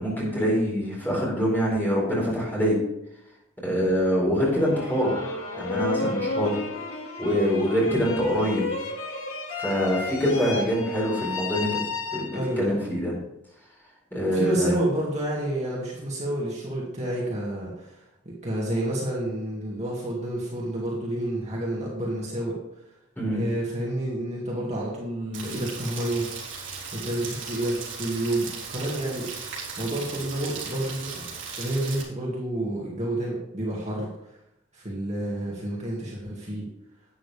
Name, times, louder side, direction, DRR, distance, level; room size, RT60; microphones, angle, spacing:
voice 1, 0.0-2.8 3.6-6.7 7.2-8.6 9.6-11.8 12.1-13.1 14.1-14.7 23.2-23.4, equal, 10° left, -4 dB, 4.3 m, -25 dB
sound 1, 4.5-12.7, left 3 dB, 85° left, 2.1 m, -32 dB
voice 2, 12.3-12.8 14.3-22.6 23.3-26.3 26.9-29.3 29.8-31.3 31.6-34.4 34.7-36.7, right 1 dB, 35° right, -4 dB, 2.1 m, -29 dB
Rain, 25.3-32.0, right 5 dB, 60° right, 3.6 m, -37 dB
11.5 x 9.2 x 3.4 m, 0.86 s
head